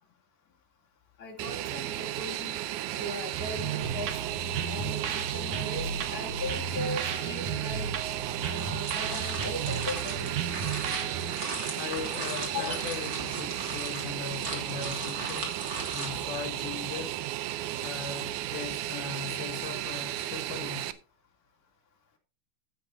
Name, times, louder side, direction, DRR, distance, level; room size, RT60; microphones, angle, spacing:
voice 1, 1.2-2.6 2.9-4.1 4.6-7.9 8.4-10.6 12.5-12.7, left 2 dB, 25° left, 3.4 m, -38 dB
Fixed-wing aircraft airplane, 1.4-20.9, right 13 dB, 80° right, 1.8 m, -34 dB
sound 1, 3.3-11.3, right 6 dB, 60° right, 1.8 m, -34 dB
sound 2, 8.1-16.1, right 2 dB, 25° right, 2.9 m, -39 dB
voice 2, 11.8-15.6 15.9-17.2 17.8-21.0, left 7 dB, 85° left, 3.0 m, -39 dB
15.0 x 8.0 x 2.8 m
omnidirectional pair, 4.2 m